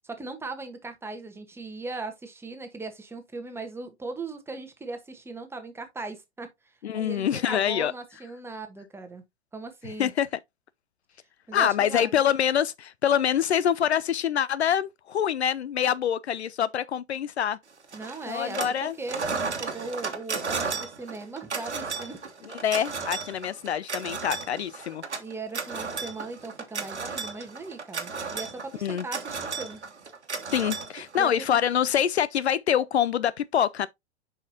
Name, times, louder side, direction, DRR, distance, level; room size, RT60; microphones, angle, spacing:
voice 1, 0.0-6.5 6.9-9.2 9.5-10.1 11.5-12.1 17.9-22.2 25.2-29.8 31.2-31.3, right 3 dB, 5° right, 1.3 m, -38 dB
voice 2, 6.8-7.9 10.0-10.3 11.5-17.6 18.3-18.9 22.6-25.0 28.8-29.0 30.5-33.9, left 9 dB, 70° left, 0.5 m, -25 dB
sound 1, 17.9-18.8 19.1-31.5, right 4 dB, 80° right, 1.3 m, -34 dB
7.1 x 5.6 x 2.8 m
figure-of-eight pair, 100°, 34 cm